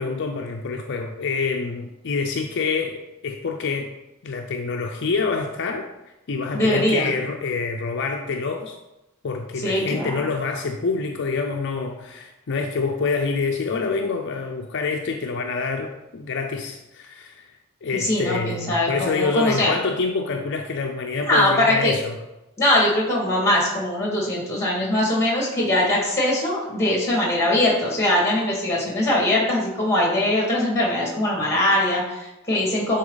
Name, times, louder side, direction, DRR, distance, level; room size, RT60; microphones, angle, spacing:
voice 1, 0.0-3.9 4.2-5.9 6.3-8.8 9.2-17.5 17.8-22.1, left 4 dB, 55° left, 3 dB, 0.5 m, -26 dB
voice 2, 6.5-7.1 9.6-10.1 17.9-19.7 21.3-21.9 22.6-33.0, left 1 dB, 15° left, -2 dB, 2.1 m, -21 dB
9.5 x 4.0 x 3.9 m, 0.99 s
head